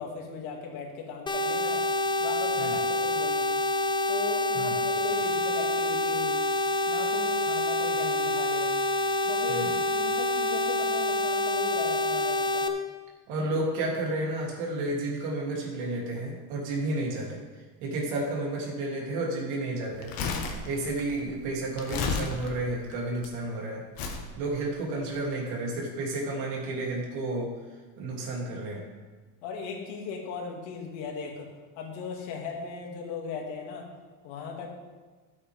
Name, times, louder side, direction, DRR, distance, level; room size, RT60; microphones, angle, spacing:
voice 1, 0.0-1.8 2.2-3.5 4.1-6.4 6.9-8.7 9.3-12.7 29.4-31.5 31.8-33.9 34.2-34.7, left 5 dB, 70° left, 0 dB, 2.5 m, -38 dB
sound 1, 1.3-12.7, left 2 dB, 10° left, 0.5 m, -27 dB
voice 2, 13.3-17.4 17.8-20.1 20.6-23.9 24.4-27.5 28.0-28.8, right 2 dB, 75° right, -2 dB, 3.1 m, -31 dB
Crumpling crinkling, 19.9-23.3 24.0-24.3 25.0-25.2, left 5 dB, 45° left, 1.6 m, -33 dB
13.0 x 8.4 x 3.6 m, 1.4 s
cardioid pair, 140°, 48 cm